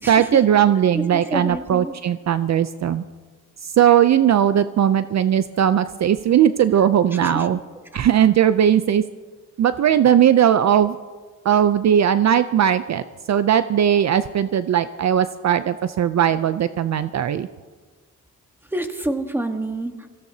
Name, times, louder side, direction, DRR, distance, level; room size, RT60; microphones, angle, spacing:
voice 1, 0.1-3.0 3.6-7.6 7.9-9.0 9.6-11.0 11.4-17.5, right 9 dB, 55° right, 12 dB, 0.5 m, -18 dB
voice 2, 0.9-1.9 7.2-7.5 18.7-20.1, right 1 dB, 5° right, 5 dB, 1.2 m, -28 dB
24.5 x 16.0 x 2.8 m, 1.4 s
wide cardioid pair, 125°, 33 cm